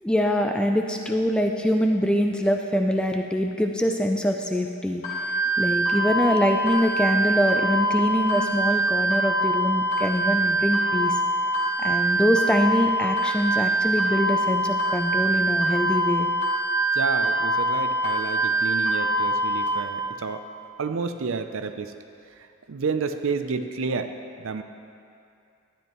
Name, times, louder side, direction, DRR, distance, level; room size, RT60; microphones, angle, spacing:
voice 1, 0.0-5.0 5.6-11.1 11.8-16.3, equal, 5° left, 3 dB, 0.3 m, -24 dB
sound 1, 5.0-19.7, right 1 dB, 35° left, 1.7 m, -24 dB
voice 2, 16.9-20.4 20.8-21.9 22.3-24.6, right 4 dB, 65° right, 8 dB, 0.5 m, -30 dB
12.0 x 9.9 x 3.0 m, 2.4 s
head